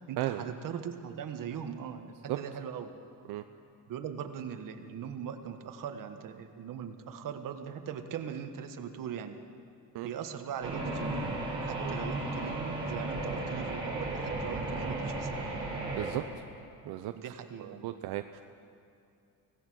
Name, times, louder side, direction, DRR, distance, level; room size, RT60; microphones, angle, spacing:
voice 1, 0.1-2.9 3.9-9.4 10.0-15.5 17.1-17.9, right 8 dB, 60° right, 7 dB, 1.5 m, -40 dB
sound 1, 10.6-16.1, right 2 dB, 15° right, 4.1 m, -35 dB
voice 2, 17.8-18.4, right 15 dB, 85° right, 7 dB, 0.8 m, -34 dB
25.0 x 17.0 x 6.3 m, 2.6 s
cardioid pair, 165°, 37 cm